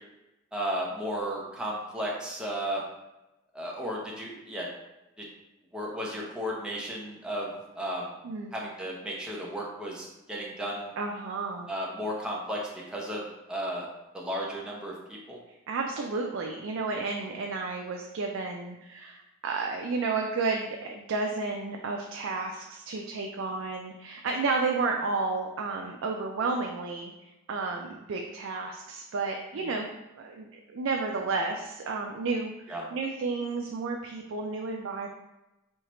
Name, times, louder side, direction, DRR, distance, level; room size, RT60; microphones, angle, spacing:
voice 1, 0.5-2.8 3.5-4.7 5.2-5.3 5.7-7.5 7.8-8.1 8.5-10.9 11.7-13.2 13.5-13.9 14.1-15.4 32.7-32.8, equal, 5° right, -4 dB, 0.6 m, -34 dB
voice 2, 11.0-11.7 15.7-27.1 27.5-29.9 30.2-35.1, right 4 dB, 60° right, 2 dB, 0.4 m, -32 dB
4.5 x 2.8 x 3.0 m, 0.96 s
head